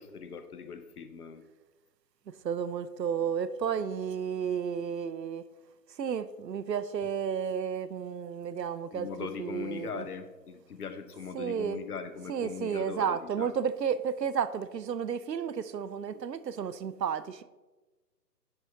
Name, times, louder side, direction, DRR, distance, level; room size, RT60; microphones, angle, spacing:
voice 1, 0.0-1.4 8.9-13.5, left 6 dB, 65° left, 10 dB, 0.9 m, -40 dB
voice 2, 2.4-5.5 6.0-10.1 11.3-11.8 12.2-17.4, right 7 dB, 85° right, 14 dB, 0.6 m, -32 dB
10.5 x 4.2 x 3.5 m, 1.2 s
figure-of-eight pair, 135°, 48 cm